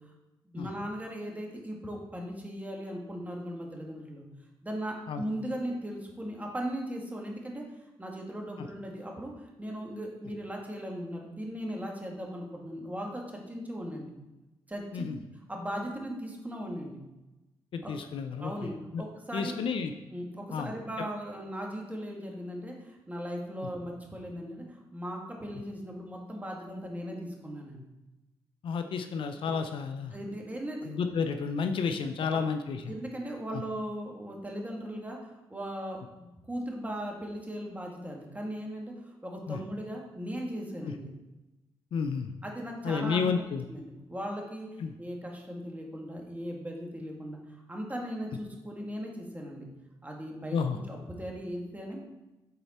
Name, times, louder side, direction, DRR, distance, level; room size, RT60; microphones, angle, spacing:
voice 1, 0.5-4.3 4.6-7.6 8.0-14.1 14.7-17.0 17.8-17.9 18.4-19.6 20.1-27.8 30.1-31.0 32.3-32.4 32.9-41.1 42.4-43.4 43.7-49.7 50.0-50.6 50.9-52.0, equal, 15° right, 0 dB, 1.8 m, -38 dB
voice 2, 17.7-18.5 18.9-19.0 19.3-19.9 20.5-20.7 28.6-30.1 30.9-32.8 33.5-33.6 39.5-39.6 40.8-40.9 41.9-42.3 42.8-43.6 44.8-44.9 50.5-50.8, left 5 dB, 65° left, 8 dB, 0.5 m, -31 dB
6.7 x 4.1 x 4.2 m, 1.0 s
supercardioid pair, 55°, 10 cm